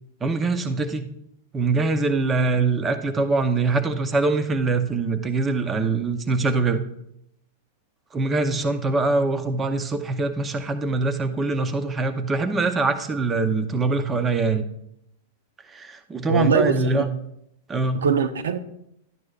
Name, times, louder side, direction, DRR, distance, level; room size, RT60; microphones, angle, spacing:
voice 1, 0.2-1.0 1.5-6.8 8.1-14.6 15.7-17.1 17.7-18.0, right 3 dB, 15° right, 9 dB, 0.8 m, -23 dB
voice 2, 16.3-17.1 17.9-18.6, right 5 dB, 90° right, 10 dB, 0.8 m, -22 dB
12.0 x 9.6 x 2.4 m, 0.77 s
hypercardioid pair, 135°, 0 cm